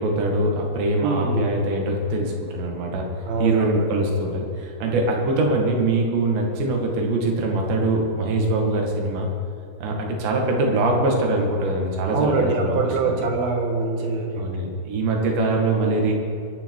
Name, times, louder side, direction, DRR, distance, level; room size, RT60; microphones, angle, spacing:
voice 1, 0.0-3.1 3.4-9.3 9.8-12.8 13.0-13.3 14.4-16.1, right 2 dB, 85° right, 0 dB, 4.3 m, -23 dB
voice 2, 1.0-1.6 3.3-3.8 12.1-14.5, right 3 dB, 65° right, 2 dB, 3.1 m, -24 dB
24.5 x 10.0 x 4.8 m, 2.4 s
omnidirectional pair, 4.8 m